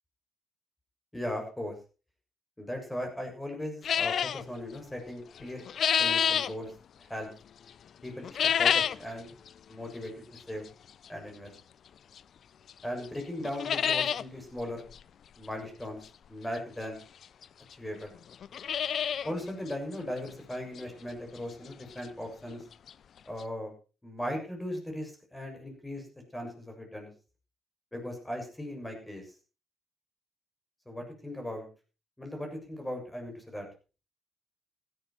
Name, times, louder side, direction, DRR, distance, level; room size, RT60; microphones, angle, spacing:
voice 1, 1.1-1.7 2.6-5.6 6.0-6.7 7.1-7.3 8.0-9.4 9.7-10.7 11.1-11.5 12.8-14.8 15.4-16.0 16.3-17.0 17.7-18.1 19.2-22.6 23.3-23.7 24.0-26.1 26.3-27.1 27.9-29.3 30.9-31.7 32.2-33.7, left 1 dB, 10° left, 2 dB, 7.2 m, -38 dB
sound 1, 3.8-4.4 5.4-6.5 8.2-9.1 9.5-9.6 10.4-10.5 12.2-12.3 12.7-12.8 13.1-13.2 13.4-14.2 14.6-14.7 14.9-15.0 16.6-16.7 17.4-17.5 17.7-17.8 18.3-19.3 19.7-19.8 20.3-20.4 20.8-20.9 22.6-22.7 22.9-23.0 23.4-23.5, left 8 dB, 60° left, 0.7 m, -27 dB
16.0 x 12.0 x 4.5 m, 0.34 s
cardioid pair, 90°, 0 cm